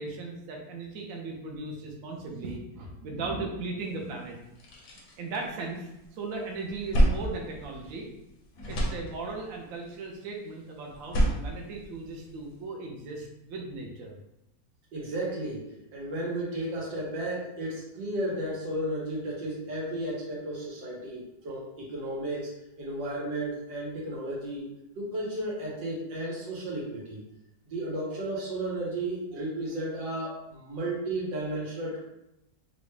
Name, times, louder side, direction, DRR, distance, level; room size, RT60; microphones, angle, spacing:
voice 1, 0.0-4.4 5.2-8.1 8.7-14.1, right 3 dB, 65° right, 0 dB, 0.9 m, -37 dB
sound 1, 3.9-4.0 4.4-6.1 6.4-8.3 8.5-9.6 10.9-12.5, right 1 dB, 60° left, 1.1 m, -29 dB
voice 2, 14.9-27.2 27.7-32.0, right 1 dB, 90° right, -4 dB, 1.7 m, -34 dB
3.9 x 2.2 x 3.1 m, 0.88 s
omnidirectional pair, 1.9 m